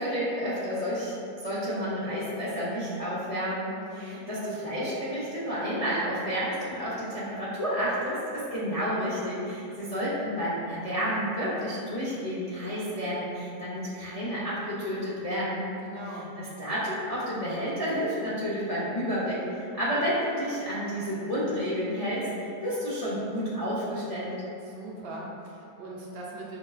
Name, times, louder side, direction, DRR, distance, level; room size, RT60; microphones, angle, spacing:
voice 1, 0.0-15.7 16.4-24.3, equal, 55° left, -11 dB, 0.4 m, -30 dB
voice 2, 15.8-16.3 24.7-26.6, right 2 dB, 75° right, -4 dB, 0.5 m, -41 dB
5.8 x 2.4 x 2.3 m, 2.6 s
omnidirectional pair, 1.7 m